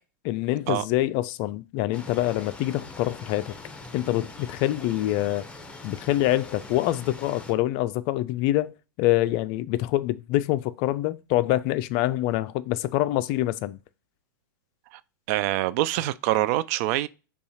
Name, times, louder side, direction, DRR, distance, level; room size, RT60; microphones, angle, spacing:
voice 1, 0.2-3.5 3.9-5.5 5.8-13.8, left 15 dB, 40° left, 0.3 m, -25 dB
sound 1, 1.9-7.5, left 2 dB, 10° left, 0.8 m, -43 dB
voice 2, 15.3-17.1, right 15 dB, 45° right, 0.4 m, -25 dB
5.4 x 2.3 x 4.2 m
hypercardioid pair, 100°, 11 cm